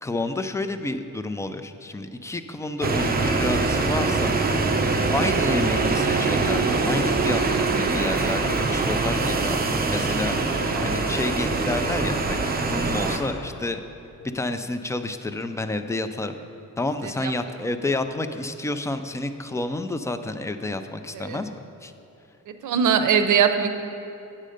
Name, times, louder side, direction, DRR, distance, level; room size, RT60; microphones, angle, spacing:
voice 1, 0.0-4.3 5.1-10.4 10.8-13.8 14.3-16.4 16.8-21.5 21.8-21.9, left 2 dB, 10° left, 8 dB, 0.3 m, -29 dB
sound 1, 2.8-13.2, right 3 dB, 30° right, 0.7 m, -23 dB
voice 2, 22.5-23.9, right 7 dB, 80° right, 8 dB, 0.7 m, -22 dB
8.5 x 6.5 x 5.0 m, 2.9 s
cardioid pair, 120°, 30 cm